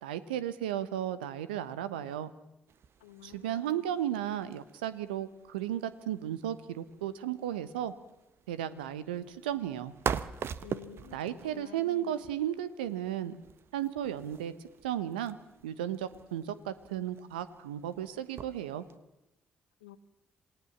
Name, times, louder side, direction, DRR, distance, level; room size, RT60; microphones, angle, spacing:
voice 1, 0.0-2.3 3.2-7.9 8.5-9.9 11.1-13.4 13.7-14.5 14.8-15.4 15.6-18.8, right 11 dB, 80° right, 15 dB, 1.1 m, -34 dB
sound 1, 2.7-19.0, right 7 dB, 55° right, 1.1 m, -44 dB
voice 2, 3.0-3.8 10.6-12.1 19.8-20.0, left 11 dB, 80° left, 14 dB, 1.1 m, -51 dB
27.5 x 18.5 x 7.3 m, 0.94 s
figure-of-eight pair, 45°, 5 cm